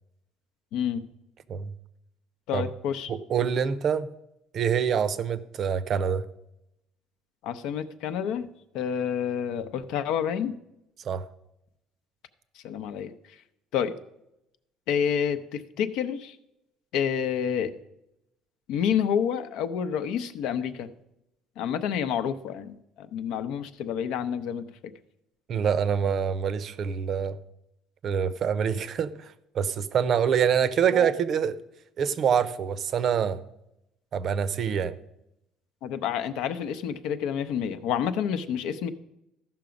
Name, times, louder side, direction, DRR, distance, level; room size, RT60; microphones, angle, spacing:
voice 1, 0.7-1.0 2.5-3.1 7.4-8.5 8.7-10.5 12.6-13.1 13.7-13.9 14.9-16.4 16.9-17.7 18.7-20.9 21.6-24.7 35.8-38.9, left 8 dB, 70° left, 11 dB, 0.7 m, -28 dB
voice 2, 3.1-4.1 4.5-6.2 11.0-11.2 25.5-27.4 28.0-29.1 29.5-31.6 32.0-33.4 34.1-34.9, right 7 dB, 40° right, 14 dB, 0.6 m, -25 dB
14.0 x 5.9 x 5.1 m, 0.84 s
cardioid pair, 145°, 0 cm